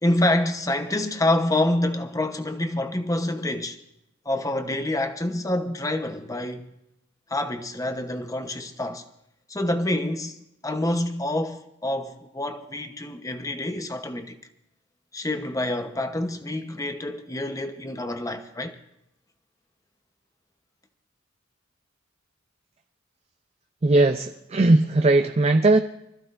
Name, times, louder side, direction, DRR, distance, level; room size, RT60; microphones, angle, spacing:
voice 1, 0.0-3.8 4.2-6.7 7.3-9.0 9.5-10.4 10.6-14.4 15.1-18.8, left 1 dB, 15° left, 0.9 m, -27 dB
voice 2, 23.8-25.8, right 2 dB, 30° right, 0.5 m, -18 dB
24.5 x 14.5 x 2.6 m
head